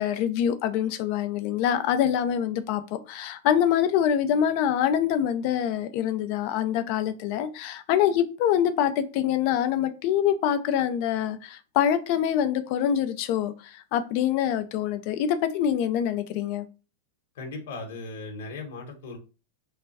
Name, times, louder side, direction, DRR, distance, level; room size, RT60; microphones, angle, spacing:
voice 1, 0.0-16.7, left 9 dB, 45° left, 0.5 m, -25 dB
voice 2, 17.3-19.2, left 3 dB, 60° left, 1.1 m, -37 dB
3.2 x 2.2 x 4.1 m
supercardioid pair, 150°, 0 cm